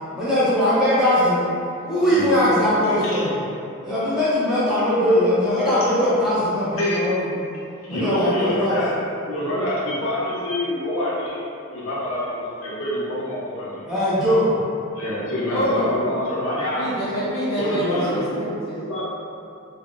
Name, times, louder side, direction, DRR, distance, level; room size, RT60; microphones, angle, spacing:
voice 1, 0.1-1.4 1.8-3.3 3.8-7.3 7.9-8.8 13.9-14.5, left 1 dB, 5° right, -12 dB, 0.6 m, -20 dB
voice 2, 3.0-3.3 5.8-6.1 6.8-7.1 7.8-11.5 11.7-13.8 14.9-17.0 17.6-18.2 18.8-19.0, left 1 dB, 80° left, -7 dB, 0.6 m, -26 dB
voice 3, 15.5-15.9 16.7-18.8, equal, 65° left, -10 dB, 1.1 m, -26 dB
3.5 x 2.3 x 2.4 m, 2.6 s
head